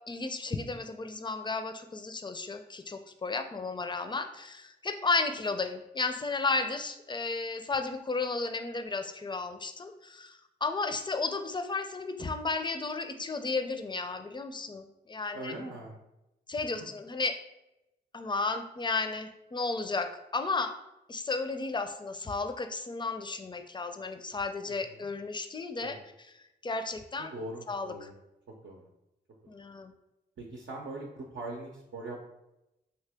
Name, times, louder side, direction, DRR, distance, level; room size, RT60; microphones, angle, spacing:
voice 1, 0.1-15.5 16.5-17.4 18.1-20.7 21.1-26.0 26.6-27.3 27.7-27.9 29.5-29.9, left 3 dB, 25° left, 8 dB, 0.4 m, -33 dB
voice 2, 15.3-16.0 16.7-16.9 24.7-25.1 25.8-26.0 27.2-28.1 28.6-28.9 30.4-32.2, right 2 dB, 80° right, -2 dB, 0.6 m, -41 dB
2.8 x 2.8 x 3.4 m, 0.90 s
cardioid pair, 45°, 19 cm